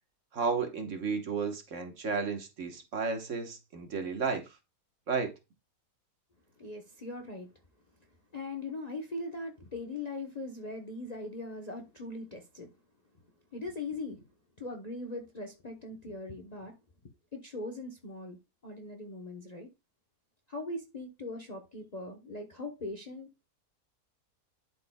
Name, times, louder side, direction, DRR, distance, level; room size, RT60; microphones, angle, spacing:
voice 1, 0.3-4.4 5.1-5.3, right 5 dB, 55° right, 1.4 m, -33 dB
voice 2, 6.6-7.5 8.3-12.7 13.5-14.2 14.6-16.8 17.3-19.7 20.5-23.5, left 2 dB, 35° left, 0.8 m, -40 dB
11.5 x 4.6 x 2.2 m
omnidirectional pair, 1.7 m